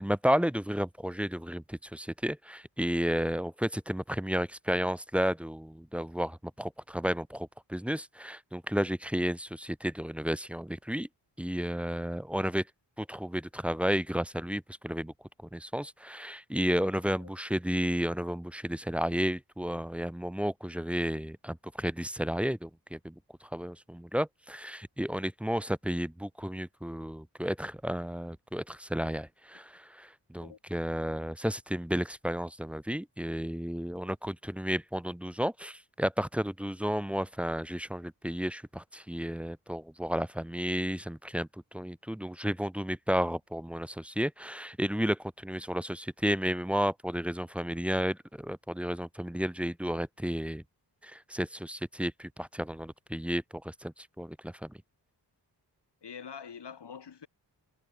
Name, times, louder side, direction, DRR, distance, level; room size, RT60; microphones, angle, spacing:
voice 1, 0.0-11.1 11.4-12.6 13.0-15.1 15.5-23.1 23.4-50.6 51.0-54.7, equal, 5° right, 0.7 m, -32 dB
voice 2, 56.0-57.3, left 7 dB, 75° left, 7.3 m, -45 dB
cardioid pair, 65°, 41 cm